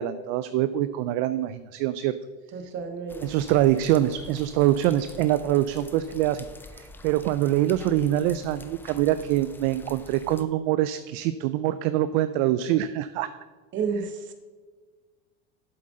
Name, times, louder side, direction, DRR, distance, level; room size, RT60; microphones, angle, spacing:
voice 1, 0.0-2.2 3.2-6.5 6.8-13.3, right 13 dB, 55° right, 13 dB, 0.4 m, -24 dB
voice 2, 2.5-3.5 13.7-14.3, right 5 dB, 35° right, 7 dB, 1.2 m, -31 dB
sound 1, 3.1-10.4, left 2 dB, 5° left, 0.4 m, -47 dB
7.7 x 7.5 x 3.8 m, 1.4 s
supercardioid pair, 125°, 33 cm